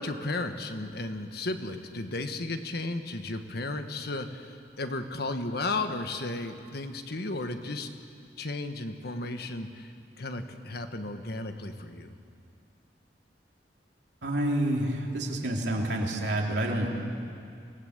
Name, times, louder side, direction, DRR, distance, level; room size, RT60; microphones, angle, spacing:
voice 1, 0.0-7.9 8.4-12.2, left 2 dB, 65° left, 7 dB, 1.5 m, -34 dB
voice 2, 14.2-16.9, right 1 dB, 80° right, -1 dB, 3.3 m, -28 dB
26.5 x 18.0 x 8.1 m, 2.4 s
head